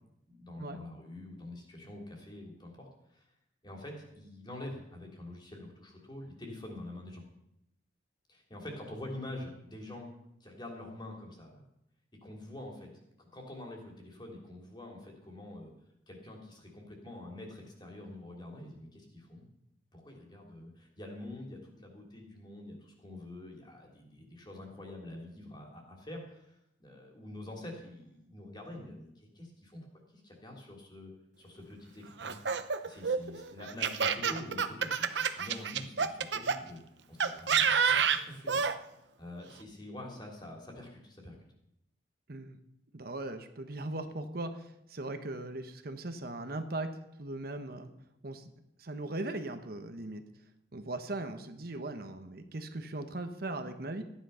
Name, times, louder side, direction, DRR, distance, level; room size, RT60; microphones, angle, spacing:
voice 1, 0.3-3.3 3.6-7.2 8.3-10.1 10.4-11.6 12.2-12.9 13.2-15.7 16.1-19.5 19.9-29.8 30.1-32.4 32.8-36.8 37.1-38.7 39.2-41.3, left 1 dB, 25° left, 0 dB, 3.2 m, -46 dB
Laughter, 32.2-36.6 37.2-38.8, right 6 dB, 75° right, 0.8 m, -28 dB
voice 2, 42.9-46.9 47.2-47.9 48.2-48.5 48.8-50.2 50.7-54.0, right 2 dB, 55° right, 7 dB, 1.1 m, -39 dB
14.5 x 10.0 x 5.7 m, 0.82 s
head